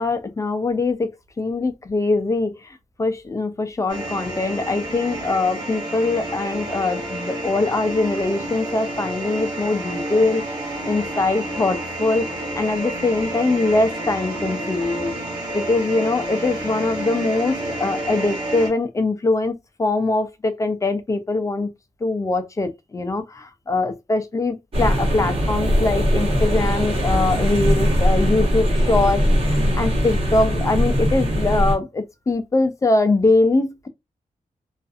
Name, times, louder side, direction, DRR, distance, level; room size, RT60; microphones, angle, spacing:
voice 1, 0.0-2.5 3.0-10.4 10.8-15.1 15.5-21.7 22.0-33.9, left 2 dB, 20° left, 0.4 m, -22 dB
sound 1, 3.9-18.7, right 1 dB, 25° right, 1.4 m, -30 dB
sound 2, 24.7-31.8, equal, 40° right, 1.1 m, -20 dB
2.5 x 2.4 x 2.3 m
wide cardioid pair, 155°, 14 cm